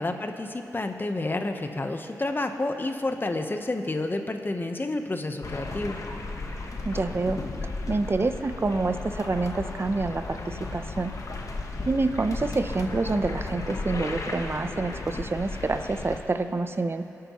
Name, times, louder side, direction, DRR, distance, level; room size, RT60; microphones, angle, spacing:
voice 1, 0.0-6.0, left 2 dB, 35° left, 6 dB, 1.0 m, -30 dB
sound 1, 5.4-16.2, left 3 dB, 60° left, 1.1 m, -35 dB
voice 2, 6.8-7.4 7.9-11.1 11.8-17.0, right 3 dB, 40° right, 9 dB, 0.7 m, -27 dB
21.0 x 8.7 x 3.1 m, 2.9 s
cardioid pair, 45°, 6 cm